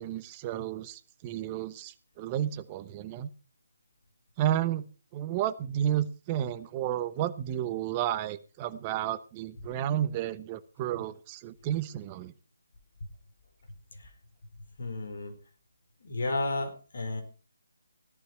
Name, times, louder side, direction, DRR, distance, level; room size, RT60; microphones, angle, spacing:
voice 1, 0.0-3.3 4.4-4.8 5.1-12.3, right 11 dB, 20° right, 13 dB, 1.0 m, -32 dB
voice 2, 14.8-15.3 16.0-17.2, left 2 dB, 50° left, 5 dB, 4.2 m, -33 dB
17.0 x 11.5 x 4.6 m, 0.35 s
figure-of-eight pair, 145°, 0 cm